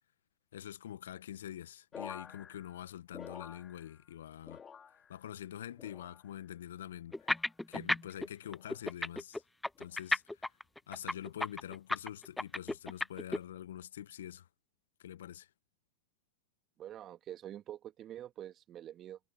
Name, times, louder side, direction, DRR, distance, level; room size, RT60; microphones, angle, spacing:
voice 1, 0.5-4.6 4.9-7.4 7.7-9.4 9.8-10.5 10.9-14.5 15.0-15.5, left 11 dB, 70° left, 1.4 m, -46 dB
sound 1, 1.9-4.2 4.4-5.3 5.8-6.5 7.1-7.6 8.4-8.8 9.7-10.0, left 7 dB, 20° left, 2.3 m, -50 dB
sound 2, 7.1-8.3 8.5-13.4, left 1 dB, 5° left, 0.6 m, -33 dB
voice 2, 16.8-19.2, right 11 dB, 35° right, 2.1 m, -46 dB
figure-of-eight pair, 95°, 0 cm